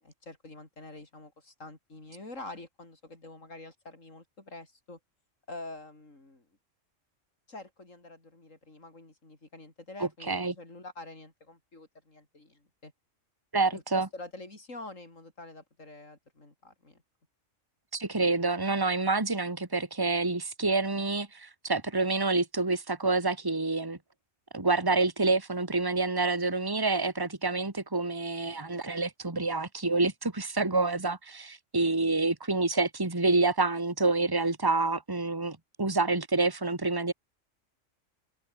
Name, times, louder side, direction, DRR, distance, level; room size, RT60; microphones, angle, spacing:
voice 1, 0.0-5.0 5.5-6.5 7.5-12.9 13.7-17.0, left 2 dB, 80° left, 5.6 m, -46 dB
voice 2, 10.0-10.5 13.5-14.1 17.9-24.0 24.5-37.1, right 3 dB, 15° right, 2.1 m, -28 dB
omnidirectional pair, 1.3 m